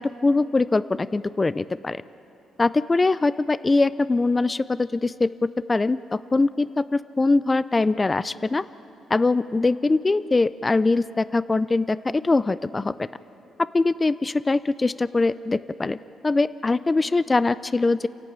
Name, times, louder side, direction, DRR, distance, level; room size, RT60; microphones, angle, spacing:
voice 1, 0.0-2.0 2.6-8.6 9.1-12.0 12.2-13.1 13.7-16.0 16.2-18.1, left 3 dB, 25° left, 16 dB, 0.4 m, -22 dB
29.5 x 11.5 x 8.7 m, 2.9 s
cardioid pair, 90°, 0 cm